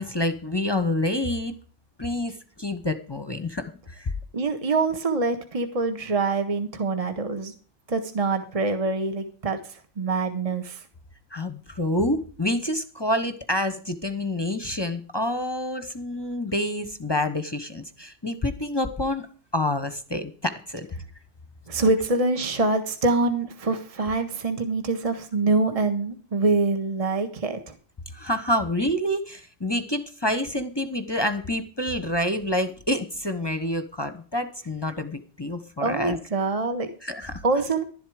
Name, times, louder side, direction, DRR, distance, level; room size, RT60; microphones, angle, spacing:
voice 1, 0.0-1.5 2.0-4.1 11.3-19.3 19.5-20.9 28.1-36.2 37.0-37.4, left 1 dB, 20° left, 9 dB, 1.0 m, -27 dB
voice 2, 4.3-7.5 7.9-10.8 21.7-27.7 35.8-36.9 37.4-37.8, right 3 dB, 30° right, 7 dB, 1.4 m, -25 dB
12.0 x 11.0 x 4.9 m, 0.40 s
omnidirectional pair, 1.2 m